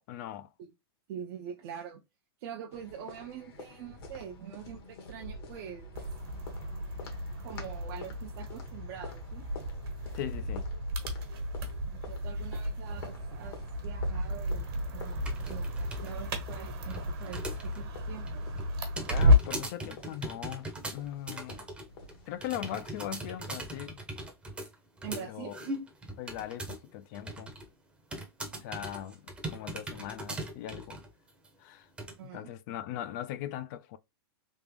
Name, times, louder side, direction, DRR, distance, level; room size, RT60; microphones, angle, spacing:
voice 1, 0.1-0.5 10.1-10.6 19.1-21.6 22.3-24.0 25.1-25.6 26.2-27.5 28.6-31.0 31.6-31.9 32.3-34.0, left 12 dB, 45° left, 0.4 m, -40 dB
voice 2, 1.1-2.0 2.4-5.9 7.4-9.5 11.9-13.6 13.8-18.4 25.0-25.5 32.2-32.5, right 9 dB, 50° right, 0.6 m, -44 dB
sound 1, 2.7-22.5, left 3 dB, 60° left, 1.3 m, -49 dB
sound 2, 5.9-19.7, left 1 dB, 70° right, 1.3 m, -32 dB
sound 3, 15.2-16.1 16.4-17.8 18.1-26.9 27.1-27.7 28.1-31.1 31.4-31.5 32.0-32.1, right 1 dB, 10° right, 0.7 m, -40 dB
3.5 x 2.4 x 3.3 m
supercardioid pair, 145°, 13 cm